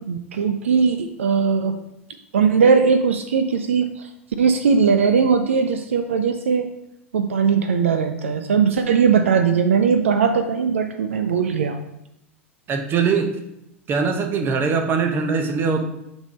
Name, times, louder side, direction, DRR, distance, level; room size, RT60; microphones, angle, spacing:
voice 1, 0.1-1.7 2.3-4.1 4.4-6.7 7.1-11.8, right 6 dB, 70° right, 9 dB, 0.5 m, -19 dB
voice 2, 12.7-13.3 13.9-15.8, right 5 dB, 30° right, 5 dB, 1.0 m, -21 dB
6.0 x 3.6 x 5.2 m, 0.86 s
figure-of-eight pair, 85°, 7 cm